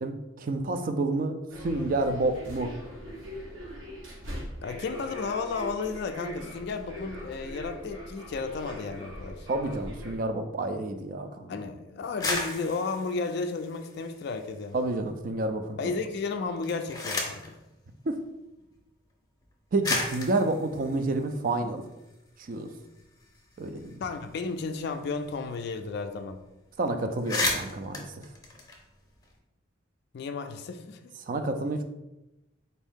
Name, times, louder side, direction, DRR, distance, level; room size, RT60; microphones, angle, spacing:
voice 1, 0.0-2.7 9.5-11.5 14.7-15.8 18.1-18.2 19.7-21.8 22.5-22.7 23.6-24.0 26.8-28.1 31.3-31.8, right 2 dB, 45° right, 7 dB, 0.4 m, -29 dB
sound 1, 1.5-10.2, equal, 80° right, 1.0 m, -41 dB
voice 2, 4.6-9.5 10.8-10.9 11.5-14.8 15.8-17.6 24.0-26.4 30.1-31.1, left 4 dB, 55° left, 7 dB, 0.3 m, -33 dB
sound 2, 12.0-14.6 15.0-15.7 16.5-17.5 18.6-18.7 19.4-19.5 19.8-22.1 22.5-22.6 22.9-25.5 25.7-25.9 26.2-26.4 26.8-26.9 27.1-29.3, left 2 dB, 20° left, 0.6 m, -34 dB
4.1 x 2.6 x 3.6 m, 0.96 s
head